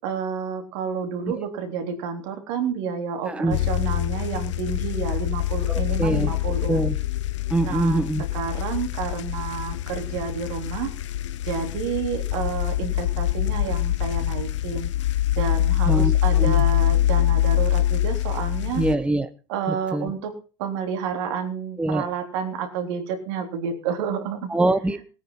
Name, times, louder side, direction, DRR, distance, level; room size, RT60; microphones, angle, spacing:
voice 1, 0.0-6.8 7.6-8.0 8.3-10.9 11.5-14.9 15.3-18.9 19.5-20.3 20.6-24.5, right 6 dB, 65° right, 5 dB, 3.5 m, -30 dB
voice 2, 3.3-3.6 5.7-6.3 6.7-7.0 7.5-8.2 15.9-16.6 18.8-19.3 19.7-20.1 21.8-22.0 24.5-25.0, right 2 dB, 5° right, 11 dB, 1.0 m, -24 dB
sound 1, 3.5-19.0, left 13 dB, 80° left, 0.7 m, -24 dB
18.0 x 9.2 x 5.7 m, 0.37 s
hypercardioid pair, 95°, 15 cm